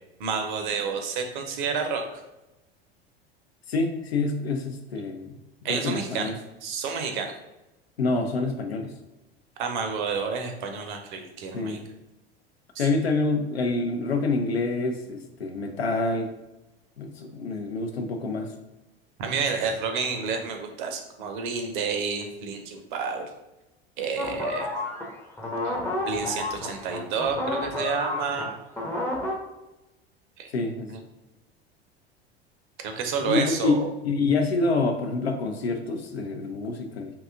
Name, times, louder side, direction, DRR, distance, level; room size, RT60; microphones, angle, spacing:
voice 1, 0.2-2.2 5.6-6.3 6.6-7.3 9.6-11.8 12.8-12.9 19.2-23.3 24.0-24.7 25.6-25.7 26.1-28.6 30.4-30.5 30.9-31.0 32.8-33.9, right 5 dB, 50° right, 5 dB, 0.6 m, -30 dB
voice 2, 3.7-5.4 5.6-6.4 8.0-8.9 11.5-11.8 12.8-16.3 17.0-18.5 30.5-30.9 33.2-37.1, left 3 dB, 80° left, 5 dB, 0.5 m, -27 dB
sound 1, 24.2-29.3, left 2 dB, 5° left, 0.5 m, -30 dB
2.7 x 2.3 x 3.5 m, 0.97 s
figure-of-eight pair, 75°, 31 cm